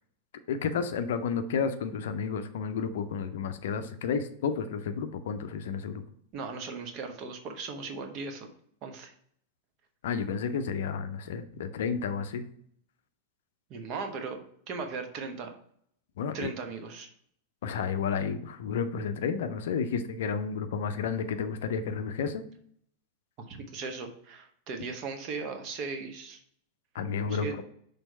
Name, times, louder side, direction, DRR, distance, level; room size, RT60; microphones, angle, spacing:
voice 1, 0.5-6.0 10.0-12.4 16.2-16.5 17.6-22.4 26.9-27.6, left 6 dB, 60° left, 9 dB, 0.5 m, -31 dB
voice 2, 6.3-8.5 8.8-9.1 13.7-15.5 16.3-17.1 23.5-26.4 27.3-27.6, right 4 dB, 40° right, 5 dB, 1.0 m, -38 dB
6.2 x 3.3 x 5.4 m, 0.65 s
figure-of-eight pair, 90°, 0 cm